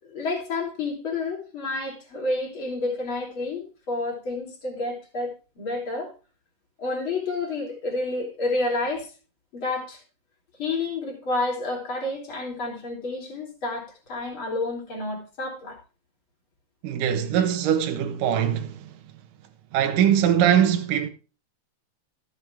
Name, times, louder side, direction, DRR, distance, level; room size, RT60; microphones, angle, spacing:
voice 1, 0.0-6.1 6.8-9.1 9.5-10.0 10.6-15.8 17.3-17.4, left 2 dB, 35° left, 4.3 m, -30 dB
voice 2, 16.8-18.8 19.7-21.1, right 9 dB, 75° right, 2.8 m, -21 dB
14.5 x 8.1 x 3.5 m
omnidirectional pair, 3.9 m